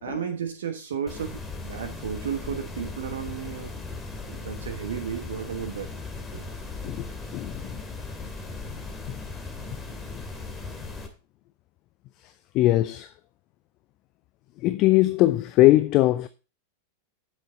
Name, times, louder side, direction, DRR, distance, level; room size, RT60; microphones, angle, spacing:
voice 1, 0.0-3.7 4.3-5.9 6.3-6.4, right 8 dB, 65° right, 1.2 m, -33 dB
sound 1, 1.1-11.1, left 3 dB, 15° left, 2.6 m, -37 dB
voice 2, 7.3-7.8 9.1-9.2 12.2-13.1 14.6-16.3, left 17 dB, 40° left, 0.5 m, -21 dB
9.9 x 7.9 x 4.0 m
figure-of-eight pair, 90°, 0 cm